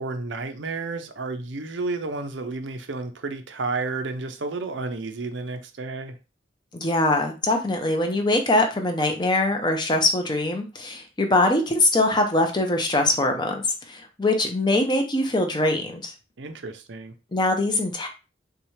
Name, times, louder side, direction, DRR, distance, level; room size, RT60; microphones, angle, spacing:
voice 1, 0.0-6.2 16.4-17.1, right 3 dB, 80° right, 0.6 m, -31 dB
voice 2, 6.7-16.1 17.3-18.1, left 2 dB, 25° left, 0.7 m, -22 dB
5.6 x 2.3 x 3.2 m
head